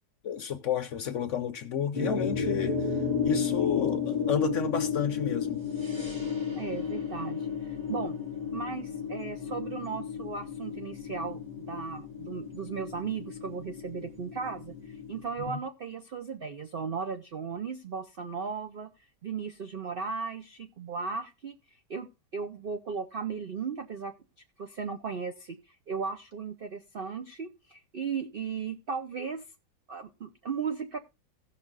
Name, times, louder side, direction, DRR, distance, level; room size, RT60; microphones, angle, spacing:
voice 1, 0.2-2.9 3.2-5.6 15.5-15.6, left 6 dB, 55° left, 0.9 m, -31 dB
sound 1, 1.9-15.3, left 6 dB, 15° right, 3.4 m, -33 dB
voice 2, 6.5-8.2 8.5-18.9 19.2-21.5 21.9-22.1 22.3-24.1 24.6-29.4 29.9-31.0, right 5 dB, 80° right, 0.5 m, -36 dB
16.5 x 6.0 x 3.7 m
omnidirectional pair, 1.9 m